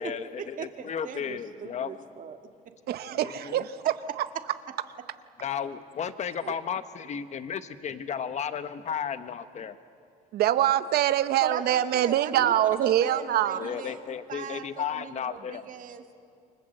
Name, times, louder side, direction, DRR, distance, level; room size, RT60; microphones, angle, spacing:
voice 1, 0.0-2.0 3.2-3.6 5.4-9.8 12.4-12.5 13.6-15.6, left 7 dB, 45° left, 11 dB, 1.2 m, -34 dB
voice 2, 0.6-2.4 11.4-12.5 12.8-14.0 14.3-16.1, right 8 dB, 50° right, 6 dB, 1.9 m, -39 dB
voice 3, 2.9-4.2 6.4-6.5 10.3-13.7, right 12 dB, 70° right, 12 dB, 0.9 m, -25 dB
28.5 x 24.5 x 7.9 m, 2.3 s
cardioid pair, 110°, 17 cm